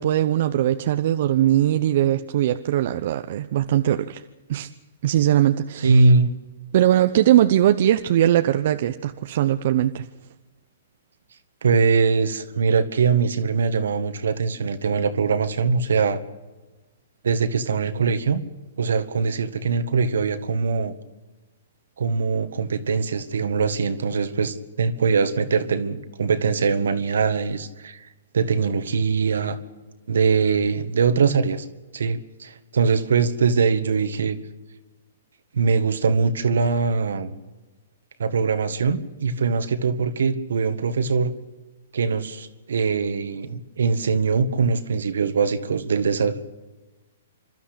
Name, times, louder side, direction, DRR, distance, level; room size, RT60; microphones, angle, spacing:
voice 1, 0.0-4.2 4.5-4.7 5.0-6.1 6.7-10.1, right 12 dB, 55° right, 8 dB, 0.9 m, -20 dB
voice 2, 5.8-6.3 11.6-16.2 17.2-18.4 18.8-20.9 22.0-28.1 28.3-29.6 30.1-31.7 31.9-34.4 35.5-37.4 38.2-41.3 41.9-46.4, right 5 dB, 80° right, 10 dB, 1.8 m, -22 dB
27.5 x 13.0 x 8.5 m, 1.2 s
hypercardioid pair, 135°, 0 cm